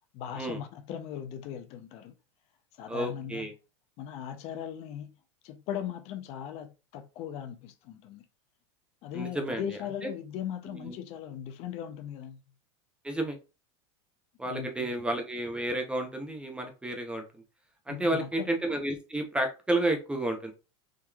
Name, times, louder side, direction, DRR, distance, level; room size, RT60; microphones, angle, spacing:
voice 1, 0.1-2.1 2.7-3.5 4.0-5.2 5.4-8.2 9.0-12.4 14.4-14.9 17.9-18.5, left 9 dB, 45° left, 0.5 m, -38 dB
voice 2, 2.9-3.5 9.1-9.6 10.7-10.9 13.0-13.4 14.4-17.4 17.9-20.5, right 1 dB, 5° right, 0.6 m, -31 dB
3.6 x 3.0 x 2.3 m
supercardioid pair, 135°, 15 cm